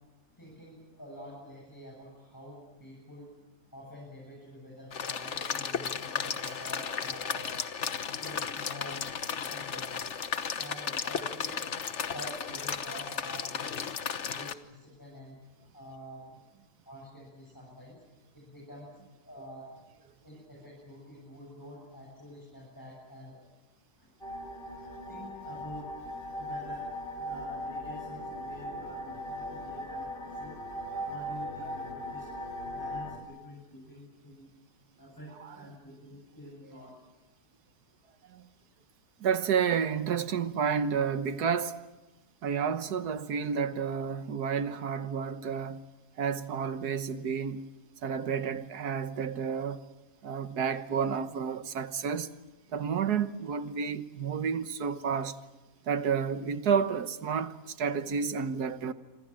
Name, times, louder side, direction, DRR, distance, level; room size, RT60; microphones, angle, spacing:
voice 1, 0.4-3.3 3.7-7.5 8.2-9.0 9.5-10.1 10.6-11.6 12.1-13.8 14.3-15.4 15.7-16.4 16.8-18.0 18.3-19.0 19.2-19.7 20.2-23.4 24.0-24.1 25.1-25.9 26.4-26.9 27.2-30.6 31.0-32.3 32.6-34.5 35.0-37.0, equal, 10° left, 8.0 m, -47 dB
sound 1, 4.9-14.5, left 6 dB, 50° left, 1.3 m, -34 dB
sound 2, 24.2-33.2, equal, 30° left, 3.7 m, -39 dB
voice 2, 39.2-41.8 42.4-45.8 46.2-47.7 48.0-49.8 50.2-52.3 52.7-55.4 55.9-58.9, right 6 dB, 80° right, 1.7 m, -30 dB
27.5 x 25.0 x 7.6 m
omnidirectional pair, 1.6 m